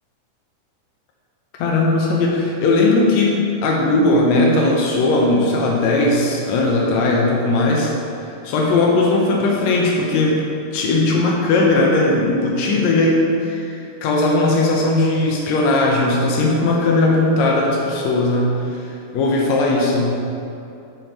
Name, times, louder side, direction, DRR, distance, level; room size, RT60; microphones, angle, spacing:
voice 1, 1.6-7.9 8.4-10.4 10.7-18.5 18.7-20.1, left 2 dB, 85° left, -2 dB, 1.5 m, -18 dB
6.1 x 6.0 x 5.3 m, 2.7 s
omnidirectional pair, 4.3 m